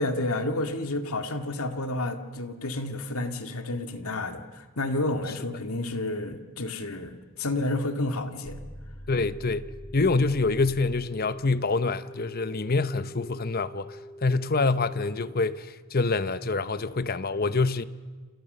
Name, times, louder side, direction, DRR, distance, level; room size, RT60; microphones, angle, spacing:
voice 1, 0.0-8.6, left 2 dB, 80° left, 2.2 m, -30 dB
sound 1, 8.4-11.2, equal, 30° left, 3.0 m, -43 dB
voice 2, 9.1-9.7 9.9-17.8, left 3 dB, 45° left, 0.9 m, -26 dB
sound 2, 9.3-15.4, equal, 75° right, 8.0 m, -46 dB
29.5 x 27.5 x 6.8 m
head